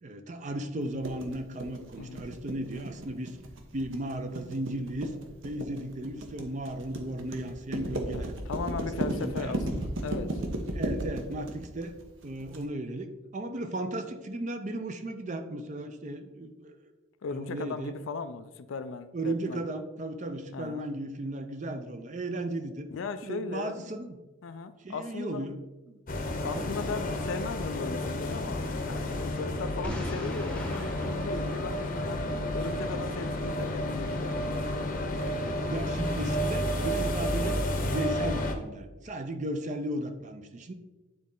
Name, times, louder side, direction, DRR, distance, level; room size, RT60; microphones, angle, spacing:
voice 1, 0.0-3.4 3.7-5.1 5.4-8.3 9.0-9.7 10.7-11.9 12.2-16.9 17.3-17.9 19.1-22.9 23.2-24.2 24.8-25.6 25.9-26.0 26.5-26.7 35.7-40.7, right 1 dB, 35° right, 7 dB, 0.5 m, -35 dB
sound 1, 1.0-12.6, right 1 dB, 70° right, 1.0 m, -34 dB
voice 2, 8.1-10.4 17.2-19.6 20.5-20.8 22.9-23.9 24.4-25.5 26.4-34.8, left 4 dB, 70° left, 11 dB, 0.4 m, -37 dB
sound 2, 26.1-38.5, left 1 dB, 40° left, 0.8 m, -31 dB
Boom, 29.8-32.7, equal, 5° left, 0.8 m, -40 dB
9.5 x 4.1 x 3.8 m, 1.1 s
head